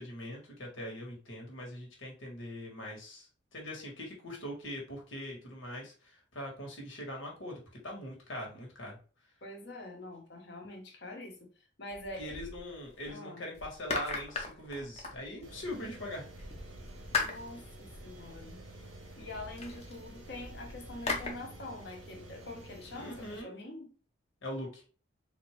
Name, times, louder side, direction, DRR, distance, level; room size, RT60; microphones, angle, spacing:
voice 1, 0.0-9.0 12.1-16.3 22.9-23.5 24.4-24.8, left 1 dB, 90° left, -1 dB, 1.6 m, -42 dB
voice 2, 9.4-11.5 11.8-12.3 13.1-13.4 17.1-18.6 19.2-23.9, left 1 dB, 60° left, 1 dB, 1.1 m, -45 dB
sound 1, 11.9-13.1 13.5-15.7 16.4-21.3, left 4 dB, 35° left, 0.7 m, -39 dB
sound 2, 15.4-23.4, right 1 dB, 85° right, 0.9 m, -51 dB
3.9 x 2.6 x 3.2 m, 0.37 s
head